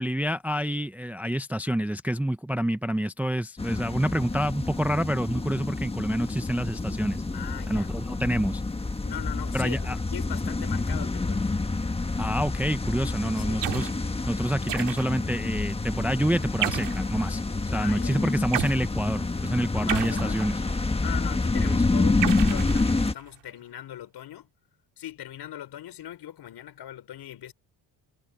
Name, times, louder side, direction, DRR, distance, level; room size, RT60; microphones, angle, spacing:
voice 1, 0.0-7.2 7.7-8.6 9.5-10.0 12.2-13.9 14.3-17.4 17.7-20.6 21.6-21.8, equal, 5° right, 0.6 m, -28 dB
sound 1, 3.6-23.1, left 3 dB, 15° left, 1.3 m, -28 dB
voice 2, 7.3-7.9 9.0-11.5 13.2-13.7 17.7-18.4 19.8-20.4 21.0-24.5 25.0-27.5, left 12 dB, 65° left, 5.1 m, -40 dB
sound 2, 13.6-14.0 14.7-15.3 16.6-17.1 18.5-18.8 19.9-20.8 22.2-23.3, right 14 dB, 80° right, 2.4 m, -32 dB
cardioid pair, 120°, 42 cm